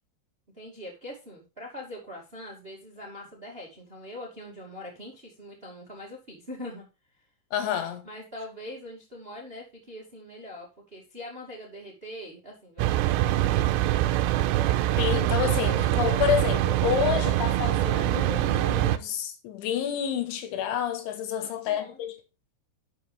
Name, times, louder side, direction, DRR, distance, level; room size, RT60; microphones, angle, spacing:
voice 1, 0.5-6.9 7.1-7.3 8.0-13.7 21.3-22.0, left 1 dB, 20° right, 1.5 m, -43 dB
voice 2, 7.5-8.1 15.0-22.1, left 9 dB, 85° left, 3.9 m, -29 dB
sound 1, 12.8-19.0, right 14 dB, 80° right, 2.7 m, -24 dB
11.5 x 7.1 x 3.4 m
omnidirectional pair, 5.3 m